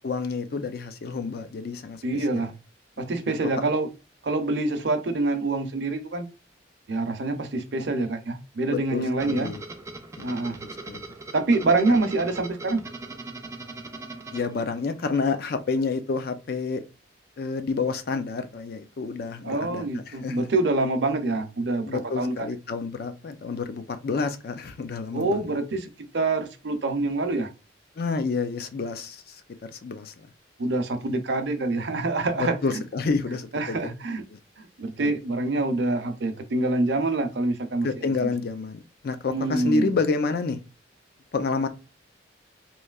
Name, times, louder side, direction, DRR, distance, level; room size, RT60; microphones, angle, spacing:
voice 1, 0.0-2.0 2.3-2.4 3.0-3.1 8.7-9.6 10.2-10.3 10.9-11.0 14.3-16.8 17.4-20.5 21.8-25.6 28.0-30.1 31.0-31.2 32.4-33.8 34.3-34.4 35.0-35.1 37.8-40.6 41.3-41.7, left 4 dB, 55° left, 0.4 m, -29 dB
voice 2, 2.0-2.5 3.0-3.9 4.2-6.3 6.9-9.5 10.2-10.6 11.3-12.8 19.4-22.5 25.1-27.5 30.6-32.8 33.5-34.2 34.6-37.9 38.2-38.3 39.3-39.9, right 2 dB, 65° right, 0.5 m, -26 dB
sound 1, 9.2-15.2, right 3 dB, 15° right, 0.3 m, -40 dB
3.0 x 2.6 x 2.3 m
head